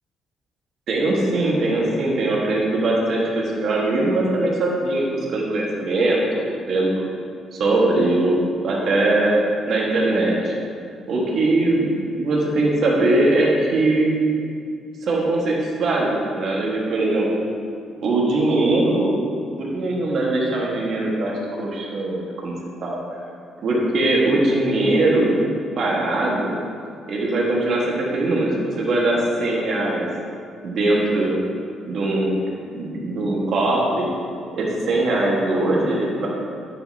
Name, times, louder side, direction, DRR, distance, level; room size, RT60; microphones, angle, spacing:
voice 1, 0.9-7.1 7.5-9.4 9.7-10.5 11.1-14.1 15.0-17.3 18.0-19.2 19.6-21.3 21.6-22.5 22.8-23.0 23.6-25.4 25.8-26.6 27.1-30.0 30.6-31.4 31.9-32.3 32.7-34.1 34.5-36.3, right 2 dB, 55° right, -3 dB, 1.5 m, -21 dB
10.0 x 5.3 x 2.8 m, 2.3 s
cardioid pair, 130°, 0 cm